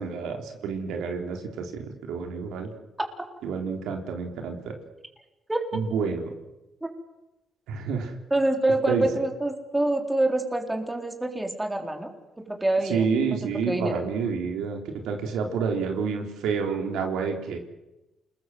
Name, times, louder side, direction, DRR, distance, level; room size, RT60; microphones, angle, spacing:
voice 1, 0.0-2.7 3.4-4.7 5.7-6.3 7.7-8.1 8.9-9.1 12.9-14.8 15.0-17.6, right 5 dB, 85° right, 3 dB, 3.8 m, -29 dB
voice 2, 5.5-5.8 6.8-6.9 8.3-12.1 12.4-13.0 13.3-14.0, right 2 dB, 10° right, 4 dB, 4.1 m, -26 dB
28.5 x 20.5 x 8.0 m, 0.98 s
cardioid pair, 90°, 0 cm